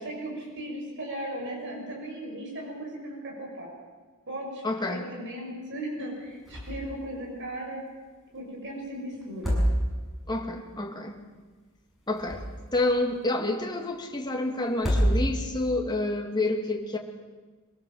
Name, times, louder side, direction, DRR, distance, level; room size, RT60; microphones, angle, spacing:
voice 1, 0.0-3.7 4.3-4.6 4.9-7.8 8.3-9.6, right 1 dB, 55° right, -1 dB, 6.5 m, -37 dB
voice 2, 4.6-5.0 10.3-11.2 12.1-12.4 12.7-17.0, left 2 dB, 20° left, 2 dB, 2.2 m, -28 dB
sound 1, 6.4-7.0 7.2-7.3 9.2-10.2 11.9-12.8 14.7-15.6, equal, ahead, 7.2 m, -26 dB
24.0 x 18.0 x 7.7 m, 1.3 s
head